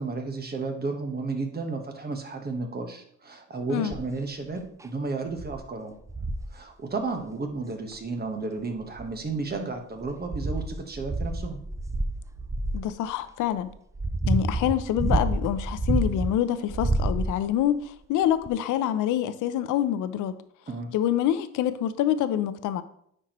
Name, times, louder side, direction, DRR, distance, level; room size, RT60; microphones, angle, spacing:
voice 1, 0.0-6.0 6.5-11.6 20.7-20.9, right 3 dB, 30° right, 1.3 m, -33 dB
sound 1, 3.9-4.2 4.8-4.9 5.4-5.6 6.1-6.5 7.9-8.0 8.8-9.5 10.0-12.9 13.6-16.3 16.7-17.6 18.5-18.6, right 2 dB, 10° right, 0.4 m, -28 dB
voice 2, 12.7-13.7 14.3-20.3 20.9-22.8, left 11 dB, 85° left, 0.6 m, -26 dB
9.6 x 4.5 x 3.0 m
cardioid pair, 90°, 30 cm